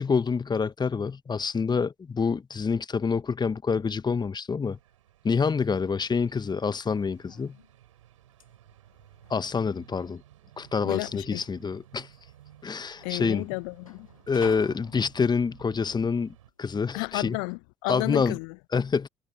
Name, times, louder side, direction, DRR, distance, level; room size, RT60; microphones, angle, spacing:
voice 1, 0.0-4.8 5.2-7.6 9.3-10.2 10.6-12.1 12.6-13.4 14.3-17.4 17.9-18.4 18.7-19.1, left 5 dB, 25° left, 1.3 m, -27 dB
sound 1, 4.7-16.5, right 13 dB, 75° right, 4.9 m, -56 dB
sound 2, 6.9-17.0, left 6 dB, 85° left, 1.8 m, -51 dB
voice 2, 10.8-11.4 13.0-14.1 16.9-18.6, left 40 dB or more, 60° left, 0.8 m, -32 dB
figure-of-eight pair, 55°, 17 cm